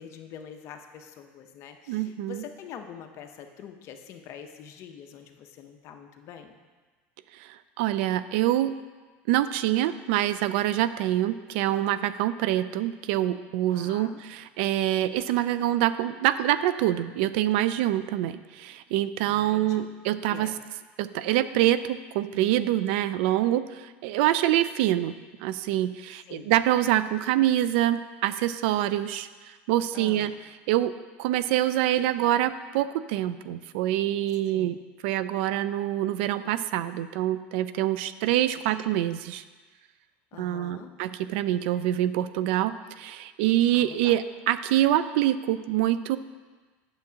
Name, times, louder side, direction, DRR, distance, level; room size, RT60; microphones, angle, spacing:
voice 1, 0.0-6.6 13.7-14.2 19.2-19.8 20.3-20.6 26.1-26.6 29.9-30.3 34.5-34.8 38.5-38.6 40.3-40.9 43.7-44.2, left 8 dB, 50° left, 5 dB, 0.7 m, -45 dB
voice 2, 1.9-2.4 7.3-8.7 9.3-20.5 21.0-25.2 25.4-29.3 29.7-30.3 30.7-30.9 31.2-34.8 35.0-39.4 40.4-46.2, right 13 dB, 75° right, 14 dB, 0.3 m, -25 dB
8.9 x 7.1 x 2.8 m, 1.4 s
supercardioid pair, 120°, 6 cm